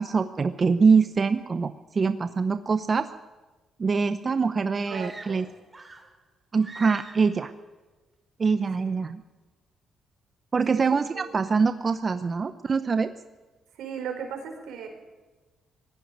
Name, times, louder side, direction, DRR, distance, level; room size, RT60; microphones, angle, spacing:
voice 1, 0.0-3.1 3.8-5.4 6.5-7.5 8.4-9.2 10.5-13.1, right 5 dB, 35° right, 10 dB, 0.7 m, -24 dB
voice 2, 4.6-5.5 10.7-11.3 13.7-14.9, right 7 dB, 80° right, 5 dB, 4.5 m, -37 dB
sound 1, 4.8-6.2 6.6-7.4, right 2 dB, 20° right, 2.6 m, -44 dB
18.5 x 15.5 x 9.1 m, 1.2 s
cardioid pair, 90°, 0 cm